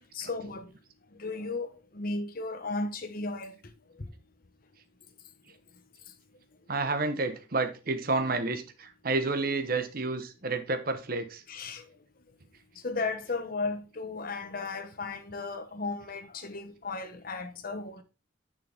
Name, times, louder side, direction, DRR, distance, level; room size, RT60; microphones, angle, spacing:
voice 1, 0.1-0.7 1.2-3.5 4.0-4.1 11.5-11.9 12.8-18.0, left 3 dB, 50° left, 1.0 m, -35 dB
voice 2, 6.7-11.4, right 3 dB, 50° right, 1.0 m, -30 dB
7.2 x 6.1 x 3.4 m
head